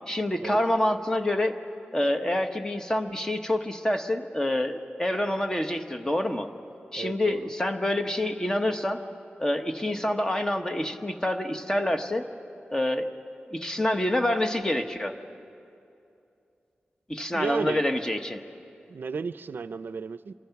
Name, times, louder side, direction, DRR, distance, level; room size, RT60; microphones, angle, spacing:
voice 1, 0.1-1.6 1.9-6.5 6.9-9.0 9.4-12.3 12.7-13.1 13.5-15.1 17.1-18.4, left 1 dB, 15° left, 6 dB, 1.1 m, -27 dB
voice 2, 7.0-7.5 17.3-17.8 18.9-20.3, right 5 dB, 65° right, 14 dB, 0.5 m, -33 dB
27.5 x 24.0 x 5.9 m, 2.6 s
wide cardioid pair, 110°, 4 cm